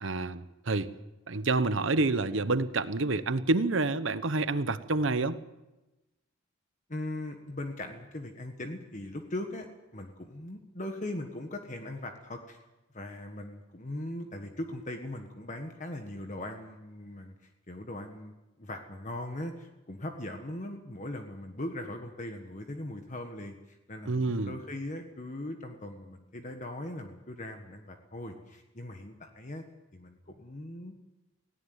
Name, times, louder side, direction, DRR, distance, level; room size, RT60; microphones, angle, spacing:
voice 1, 0.0-0.9 1.3-5.4 24.1-24.5, right 3 dB, 65° right, 13 dB, 1.0 m, -28 dB
voice 2, 6.9-9.7 9.9-12.6 12.9-17.3 17.7-18.3 18.6-29.6 29.9-31.0, left 1 dB, 35° left, 5 dB, 1.5 m, -40 dB
18.5 x 17.0 x 9.4 m, 1.0 s
head